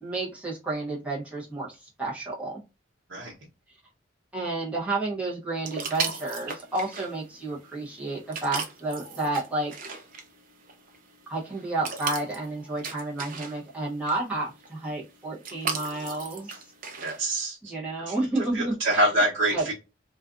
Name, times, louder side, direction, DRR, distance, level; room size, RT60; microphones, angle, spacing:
voice 1, 0.0-2.6 3.7-3.8 4.3-9.7 11.3-16.7 17.6-19.1 19.5-19.6, right 2 dB, 5° right, 0.8 m, -31 dB
sound 1, 5.6-17.3, right 5 dB, 45° right, 0.6 m, -38 dB
voice 2, 17.0-17.7 18.1-18.2 18.5-19.7, right 1 dB, 80° right, 0.9 m, -25 dB
2.4 x 2.4 x 2.4 m
head